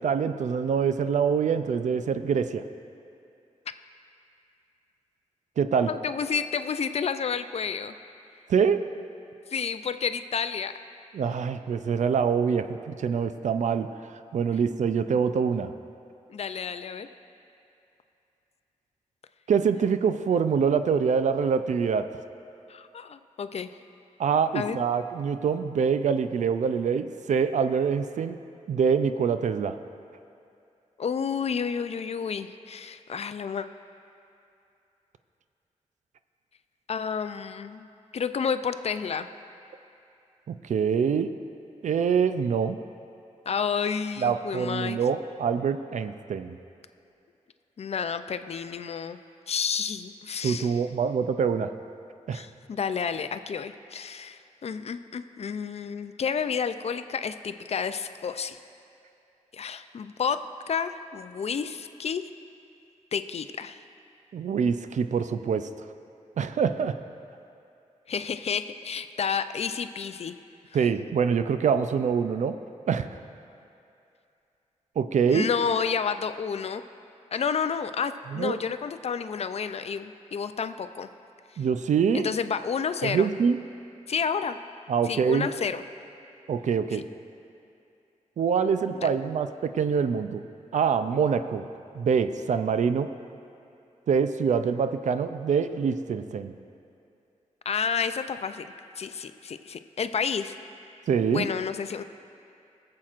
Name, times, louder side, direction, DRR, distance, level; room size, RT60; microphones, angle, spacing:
voice 1, 0.0-2.6 5.6-5.9 8.5-8.8 11.1-15.7 19.5-22.1 24.2-28.4 28.7-29.8 40.5-41.3 41.8-42.8 44.2-46.5 50.4-51.7 52.3-52.5 64.3-65.7 66.4-67.0 70.7-72.6 72.9-73.1 75.0-75.5 78.3-78.6 81.6-82.3 83.0-83.6 84.9-85.5 86.5-87.1 88.4-90.4 90.7-91.7 91.9-93.1 94.1-96.5 101.1-101.5, right 6 dB, 70° right, 10 dB, 0.4 m, -25 dB
voice 2, 5.9-7.9 9.5-10.7 16.3-17.1 22.7-23.7 24.5-24.8 31.0-33.7 36.9-37.9 38.1-39.3 43.5-45.0 47.8-49.2 49.5-50.8 52.3-58.6 59.5-60.4 60.7-62.2 63.1-63.8 68.1-70.3 75.3-76.8 77.3-81.1 82.1-83.3 84.1-84.6 85.1-85.8 86.9-87.0 88.9-89.1 97.7-98.7 99.0-100.6 101.3-102.0, left 6 dB, 55° left, 11 dB, 0.4 m, -30 dB
22.0 x 7.5 x 2.5 m, 2.6 s
cardioid pair, 80°, 13 cm